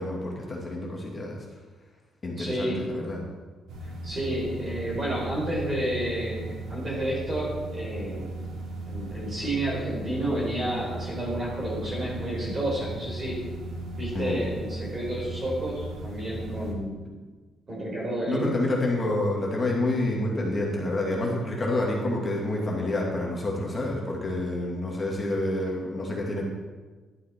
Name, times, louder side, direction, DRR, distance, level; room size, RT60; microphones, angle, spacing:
voice 1, 0.0-1.5 2.2-3.2 14.1-14.4 18.3-26.4, left 2 dB, 20° left, -2 dB, 2.2 m, -28 dB
voice 2, 2.4-2.8 4.0-8.3 8.8-13.4 13.9-17.1 17.7-18.6, right 1 dB, 30° right, -4 dB, 4.4 m, -30 dB
sound 1, 3.7-16.7, right 2 dB, 75° right, 2.6 m, -37 dB
11.5 x 11.5 x 4.4 m, 1.3 s
cardioid pair, 175°, 0 cm